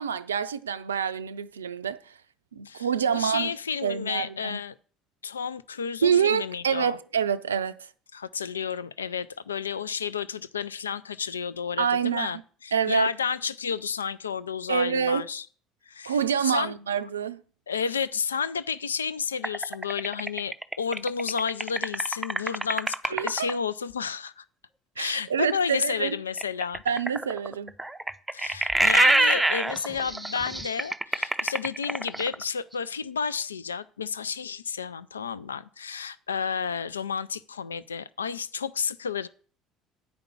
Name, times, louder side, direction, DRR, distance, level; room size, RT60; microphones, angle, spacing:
voice 1, 0.0-2.0 2.5-3.5 3.8-4.6 6.0-7.7 11.8-12.3 12.7-13.1 14.7-15.2 16.1-17.4 23.1-23.5 25.0-26.2 26.9-27.7, right 7 dB, 90° right, 0.4 m, -26 dB
voice 2, 2.7-4.7 5.2-7.0 8.1-15.5 15.9-16.7 17.7-24.4 25.0-26.8 28.3-39.3, left 6 dB, 90° left, 0.3 m, -31 dB
sound 1, 19.4-23.5 26.4-32.4, right 2 dB, 10° right, 0.6 m, -25 dB
9.1 x 5.1 x 7.0 m
hypercardioid pair, 65°, 0 cm